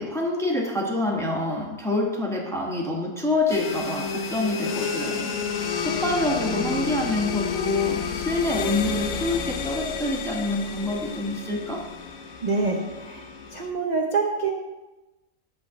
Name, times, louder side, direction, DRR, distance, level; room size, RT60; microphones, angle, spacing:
voice 1, 0.0-11.8, left 2 dB, ahead, -1 dB, 0.9 m, -26 dB
sound 1, 3.5-13.7, left 6 dB, 80° left, 1.2 m, -31 dB
voice 2, 12.4-13.2 13.5-14.5, right 4 dB, 40° right, 0 dB, 0.6 m, -26 dB
8.4 x 3.5 x 6.6 m, 1.1 s
omnidirectional pair, 1.6 m